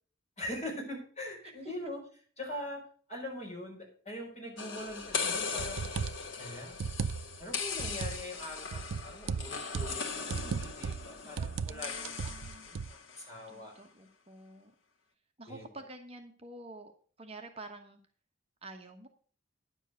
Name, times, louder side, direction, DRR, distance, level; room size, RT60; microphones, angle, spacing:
voice 1, 0.4-2.0 2.4-2.8 3.1-5.8 6.4-6.8 7.4-12.8 13.2-13.7 15.5-15.7, left 1 dB, 35° left, 0 dB, 5.1 m, -42 dB
sound 1, 4.6-13.3, left 5 dB, 80° left, 1.4 m, -39 dB
sound 2, 5.1-5.2 5.6-6.3 6.7-7.4 7.8-8.2 8.7-10.0 10.3-11.1 11.4-11.8 12.0-12.9, right 5 dB, 80° right, 0.4 m, -36 dB
voice 2, 11.2-12.7 13.5-14.7 15.4-16.9 17.2-18.0 18.6-19.1, right 2 dB, 30° right, 5 dB, 1.1 m, -49 dB
10.0 x 7.4 x 6.6 m, 0.44 s
head